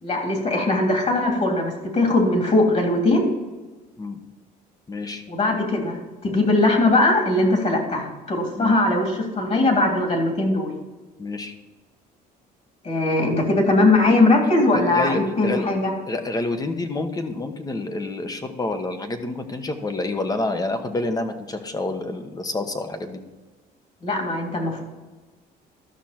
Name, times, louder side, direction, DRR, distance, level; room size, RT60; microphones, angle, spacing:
voice 1, 0.0-3.3 5.3-10.7 12.8-15.9 24.0-24.8, left 2 dB, 40° left, 1 dB, 3.1 m, -20 dB
voice 2, 4.9-5.2 8.5-8.8 11.2-11.5 14.7-15.7 16.1-23.2, left 2 dB, 20° left, 7 dB, 1.2 m, -28 dB
13.0 x 6.1 x 4.4 m, 1.2 s
cardioid pair, 110°, 17 cm